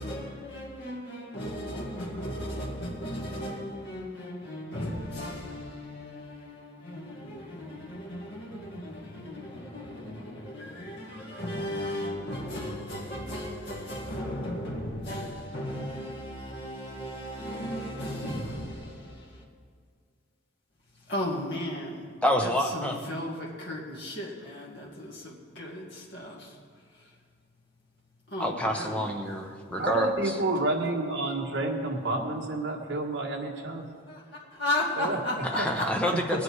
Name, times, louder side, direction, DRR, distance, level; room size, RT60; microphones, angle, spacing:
voice 1, 0.0-18.9 21.1-22.0 22.4-26.4 28.3-29.1 34.1-34.2 34.6-36.1, left 1 dB, 55° left, -4 dB, 2.2 m, -35 dB
voice 2, 22.2-23.0 28.4-30.3 35.5-36.4, equal, 5° left, 1 dB, 1.0 m, -28 dB
voice 3, 29.8-33.8 35.0-35.2 35.6-35.7, right 2 dB, 65° right, -1 dB, 1.5 m, -29 dB
20.0 x 9.3 x 4.8 m, 2.1 s
head